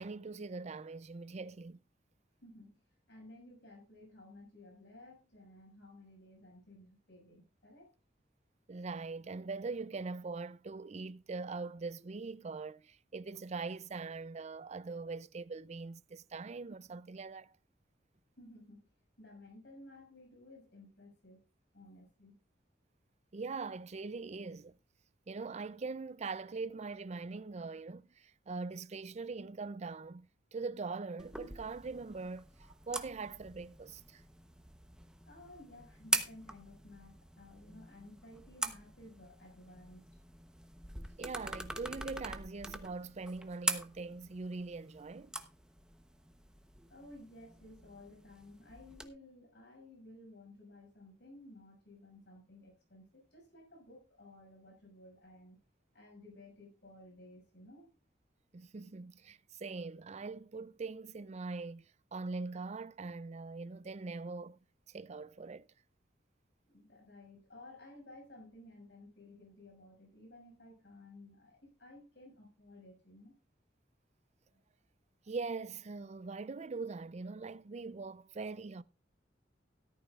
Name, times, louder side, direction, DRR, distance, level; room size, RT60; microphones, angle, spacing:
voice 1, 0.0-1.8 8.7-17.5 23.3-24.8 25.3-30.3 30.5-34.2 41.2-45.3 58.5-64.6 64.9-65.7 75.3-78.8, right 4 dB, 40° right, 0.5 m, -42 dB
voice 2, 2.4-2.8 3.1-7.9 18.4-18.9 19.2-21.4 21.7-22.4 35.3-40.1 46.9-55.6 55.9-57.9 66.6-73.3, left 1 dB, 65° left, 6.7 m, -55 dB
sound 1, 31.2-49.1, right 1 dB, 5° right, 0.9 m, -43 dB
14.5 x 13.0 x 2.4 m
head